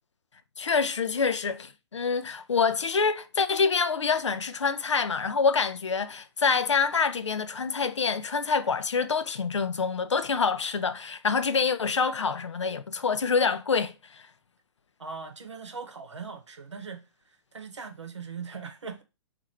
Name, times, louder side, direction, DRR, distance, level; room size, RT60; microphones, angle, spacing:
voice 1, 0.6-14.2, left 5 dB, 85° left, 0.5 m, -26 dB
voice 2, 15.0-19.0, right 5 dB, 85° right, 0.8 m, -40 dB
2.8 x 2.5 x 4.3 m
figure-of-eight pair, 125°, 15 cm